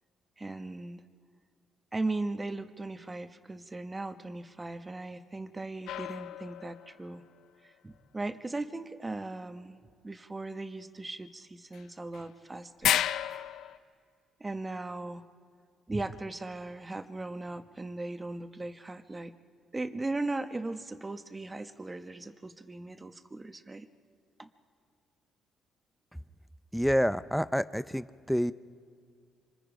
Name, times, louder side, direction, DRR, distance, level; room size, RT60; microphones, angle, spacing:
voice 1, 0.4-1.0 1.9-7.2 7.6-9.8 10.0-13.1 14.4-15.3 15.9-19.3 19.7-23.9 24.4-24.5, right 2 dB, 20° right, 9 dB, 1.2 m, -38 dB
sound 1, 5.9-7.1 11.7-11.8 12.1-12.2 12.8-13.8, left 11 dB, 80° left, 0.6 m, -31 dB
voice 2, 26.7-28.5, equal, ahead, 14 dB, 0.6 m, -28 dB
27.0 x 25.5 x 5.1 m, 2.3 s
cardioid pair, 90°, 0 cm